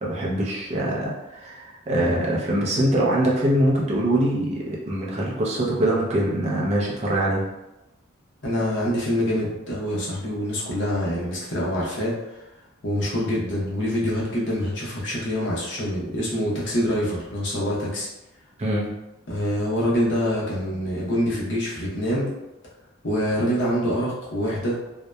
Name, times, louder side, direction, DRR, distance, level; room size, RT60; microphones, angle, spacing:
voice 1, 0.0-7.5 18.6-18.9, right 1 dB, 35° right, -4 dB, 0.4 m, -23 dB
voice 2, 8.4-12.1 12.8-18.1 19.3-22.3 23.0-24.8, equal, 60° left, -5 dB, 0.8 m, -25 dB
2.7 x 2.1 x 2.2 m, 0.95 s
head